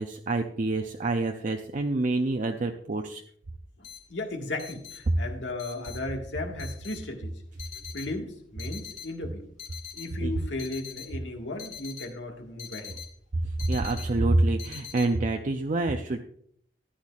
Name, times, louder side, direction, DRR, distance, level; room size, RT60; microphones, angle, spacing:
voice 1, 0.0-3.2 10.2-10.3 13.4-16.2, right 2 dB, 45° right, 4 dB, 0.6 m, -27 dB
voice 2, 3.8-7.4 7.9-9.5 9.9-13.0, left 2 dB, 85° left, 2 dB, 1.8 m, -36 dB
sound 1, 3.8-15.1, left 8 dB, 45° left, 1.7 m, -44 dB
14.5 x 10.0 x 2.4 m, 0.65 s
head